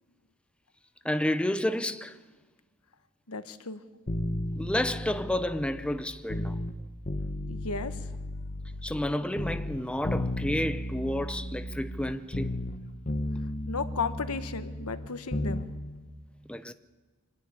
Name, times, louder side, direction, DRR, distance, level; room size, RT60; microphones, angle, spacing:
voice 1, 1.0-2.2 4.6-6.6 8.8-12.5 16.5-16.7, left 1 dB, 5° left, 0.6 m, -30 dB
voice 2, 3.3-3.8 7.5-8.1 13.7-15.7, left 4 dB, 85° left, 1.2 m, -34 dB
sound 1, 4.1-6.7 7.1-9.1 9.4-12.8 13.1-15.7 16.0-16.1, left 1 dB, 40° left, 1.3 m, -34 dB
25.0 x 10.5 x 9.7 m
head